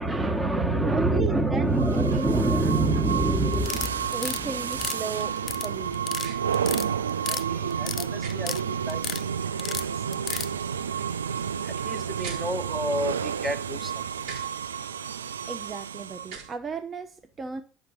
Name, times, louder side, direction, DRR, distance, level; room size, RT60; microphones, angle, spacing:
voice 1, 0.0-5.3 5.5-10.5 11.0-11.1 11.5-14.3, right 2 dB, 15° right, 1.2 m, -29 dB
voice 2, 0.9-2.3 4.1-6.1 15.5-17.6, right 5 dB, 35° right, 0.7 m, -35 dB
sound 1, 1.7-16.5, right 8 dB, 85° right, 0.3 m, -31 dB
sound 2, 3.6-4.4 4.7-5.7 5.9-6.3 6.5-7.4 7.7-8.6 8.9-9.2 9.6-10.5, left 8 dB, 40° left, 0.4 m, -32 dB
sound 3, 6.2-6.4 8.2-8.3 10.2-10.5 12.2-12.4 14.2-14.5 16.2-16.5, right 5 dB, 65° right, 3.6 m, -39 dB
8.6 x 5.8 x 5.4 m
hypercardioid pair, 65°, 0 cm